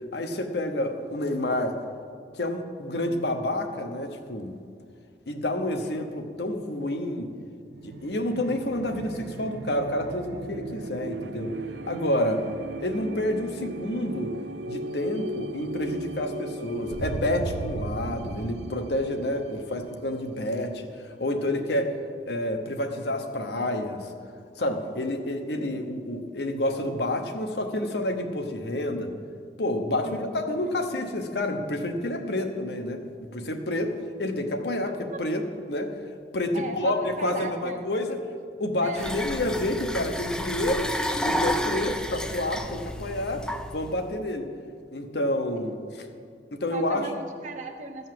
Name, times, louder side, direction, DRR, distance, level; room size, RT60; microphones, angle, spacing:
voice 1, 0.1-1.8 2.3-4.6 5.3-7.3 7.8-11.5 11.9-12.4 12.8-14.3 14.7-22.0 22.2-24.1 24.6-29.1 29.6-35.9 36.3-38.2 38.6-40.9 41.2-43.4 43.7-44.5 44.9-46.1 46.5-47.1, left 1 dB, 65° left, 5 dB, 1.0 m, -29 dB
sound 1, 7.7-21.1, right 3 dB, 75° right, 0.5 m, -37 dB
voice 2, 12.3-12.6 30.0-30.4 34.8-35.2 36.5-37.9 38.8-39.2 41.5-41.6 45.7-45.8 46.7-48.1, right 2 dB, 45° right, 4 dB, 1.0 m, -37 dB
sound 2, 39.0-44.0, equal, 5° left, 0.4 m, -31 dB
14.0 x 5.4 x 7.7 m, 2.2 s
head